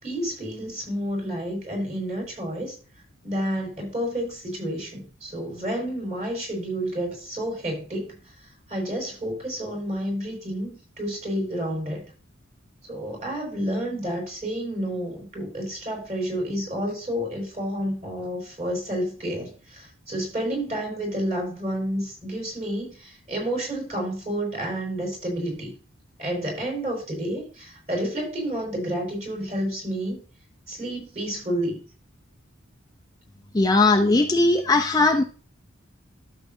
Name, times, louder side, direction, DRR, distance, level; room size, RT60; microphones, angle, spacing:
voice 1, 0.0-2.7 3.2-8.2 8.7-12.1 12.9-25.7 26.2-30.2 30.7-31.8, equal, 35° right, -1 dB, 4.4 m, -30 dB
voice 2, 33.5-35.2, left 2 dB, 20° left, 3 dB, 0.5 m, -19 dB
12.5 x 6.5 x 2.6 m, 0.38 s
head